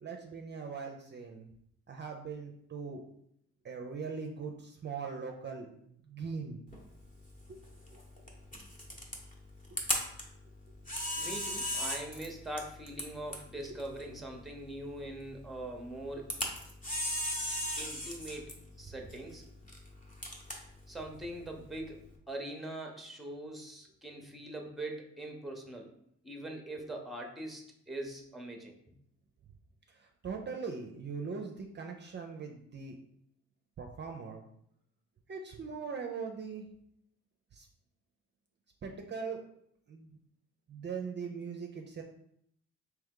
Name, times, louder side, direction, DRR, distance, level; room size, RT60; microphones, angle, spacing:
voice 1, 0.0-1.5 1.9-3.0 3.6-6.6 7.5-7.6 13.7-14.2 30.2-32.9 33.8-34.4 35.3-36.7 37.5-37.7 38.8-39.4 39.9-40.1 40.7-42.0, right 5 dB, 35° right, 3 dB, 0.5 m, -40 dB
Camera, 6.7-22.1, equal, 25° left, 1.0 m, -40 dB
voice 2, 11.2-16.3 17.8-18.5 18.8-19.4 20.9-22.0 22.3-25.9 26.2-27.6 27.9-28.7, right 1 dB, ahead, 2 dB, 0.7 m, -42 dB
3.4 x 2.9 x 3.7 m, 0.71 s
cardioid pair, 90°, 30 cm